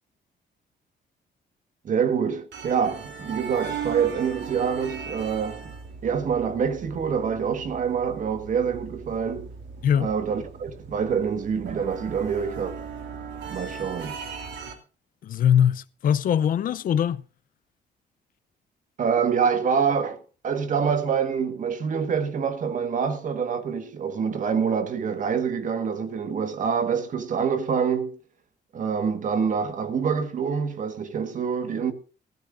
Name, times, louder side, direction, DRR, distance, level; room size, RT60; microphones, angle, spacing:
voice 1, 1.8-5.7 6.0-9.5 10.0-12.9 13.5-14.2 19.0-28.2 28.7-31.9, right 6 dB, 45° right, 1.5 m, -26 dB
sound 1, 2.5-14.7, right 6 dB, 75° right, 3.3 m, -38 dB
voice 2, 15.2-17.2, left 9 dB, 50° left, 0.6 m, -21 dB
17.0 x 14.5 x 2.6 m
cardioid pair, 175°, 18 cm